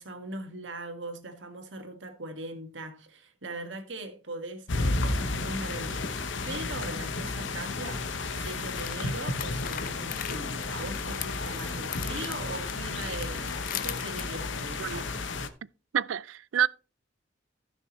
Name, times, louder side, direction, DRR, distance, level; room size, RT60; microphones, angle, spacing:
voice 1, 0.0-15.1, right 2 dB, 70° right, 1.9 m, -40 dB
sound 1, 4.7-15.5, left 3 dB, 70° left, 0.9 m, -32 dB
sound 2, 8.2-14.2, left 11 dB, 45° left, 0.6 m, -41 dB
voice 2, 15.9-16.7, right 10 dB, 90° right, 0.4 m, -27 dB
15.0 x 6.4 x 3.1 m
head